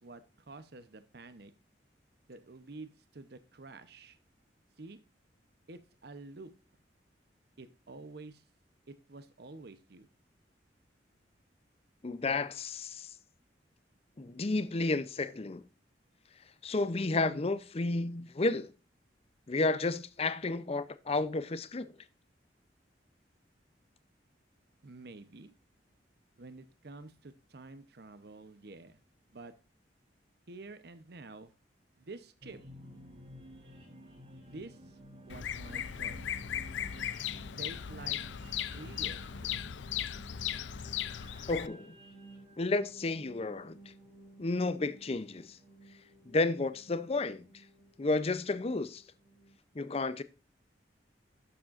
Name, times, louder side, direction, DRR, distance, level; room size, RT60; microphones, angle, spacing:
voice 1, 0.0-1.5 2.3-4.2 4.8-5.0 5.7-6.5 7.6-8.4 8.9-10.1 24.8-25.5 26.4-29.0 29.3-29.5 30.5-31.5 32.0-32.6 34.4-35.0 35.3-36.2 37.6-38.2 38.7-39.7, right 3 dB, 60° right, 0.8 m, -49 dB
voice 2, 12.0-13.1 14.2-15.6 16.6-18.7 19.5-21.9 41.5-42.0 42.6-43.8 44.4-45.6 46.2-47.5 48.0-49.0 49.7-50.2, left 3 dB, 35° left, 0.5 m, -32 dB
sound 1, 32.4-49.5, right 1 dB, 35° right, 3.6 m, -53 dB
Bird vocalization bird call bird song, 35.3-41.7, left 10 dB, 80° left, 0.5 m, -37 dB
11.5 x 7.3 x 2.5 m
head